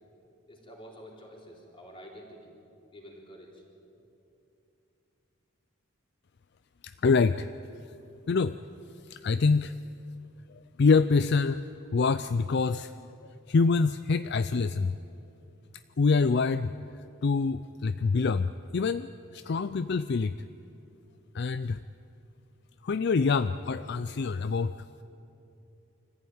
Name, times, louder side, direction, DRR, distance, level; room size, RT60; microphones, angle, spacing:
voice 1, 0.5-2.5 2.9-3.6, equal, 25° left, -1 dB, 3.8 m, -48 dB
voice 2, 6.8-7.5 8.3-8.6 9.1-9.7 10.8-11.6 11.9-12.9 13.5-14.9 16.0-16.7 17.2-20.3 21.3-21.8 22.8-24.8, left 4 dB, 55° left, 12 dB, 0.4 m, -25 dB
25.0 x 14.5 x 9.4 m, 2.8 s
head